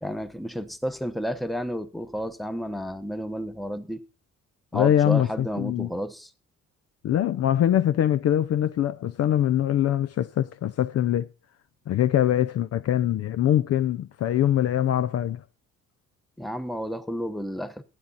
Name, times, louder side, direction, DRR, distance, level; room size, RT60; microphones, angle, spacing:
voice 1, 0.0-4.0 4.7-6.3 16.4-17.8, equal, ahead, 0.9 m, -31 dB
voice 2, 4.7-5.9 7.0-11.3 11.9-15.4, left 11 dB, 55° left, 0.5 m, -23 dB
12.0 x 9.2 x 4.2 m
cardioid pair, 90°, 30 cm